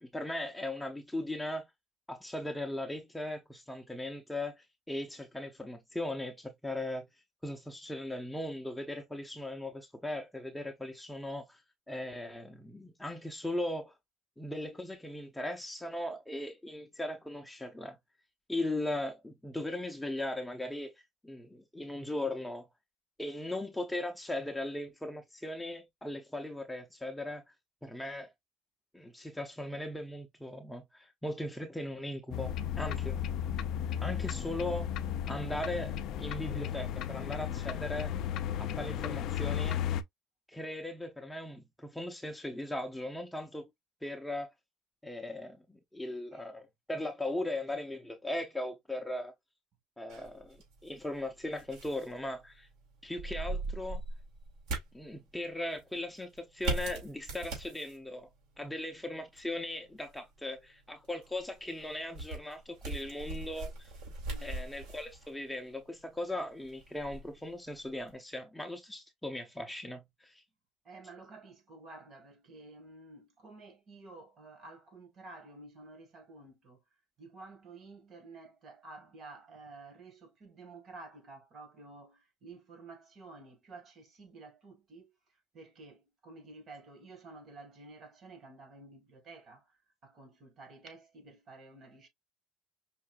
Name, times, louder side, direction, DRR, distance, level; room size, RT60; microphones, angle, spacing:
voice 1, 0.0-1.7 2.1-7.1 7.4-11.6 11.9-13.9 14.4-18.0 18.5-22.7 23.2-27.4 27.8-28.3 28.9-33.2 34.0-34.9 35.3-38.1 38.6-39.8 40.5-43.7 44.0-44.5 45.0-45.6 45.9-49.3 50.0-52.7 53.0-54.0 54.9-58.3 58.6-63.9 64.4-70.4, left 1 dB, 5° left, 0.6 m, -38 dB
sound 1, 32.3-40.0, left 10 dB, 60° left, 0.5 m, -34 dB
sound 2, 50.1-68.2, right 2 dB, 75° right, 2.6 m, -42 dB
voice 2, 64.2-64.6 70.8-76.8 77.2-92.1, right 3 dB, 40° right, 1.8 m, -52 dB
5.5 x 2.5 x 2.4 m
cardioid pair, 120°, 0 cm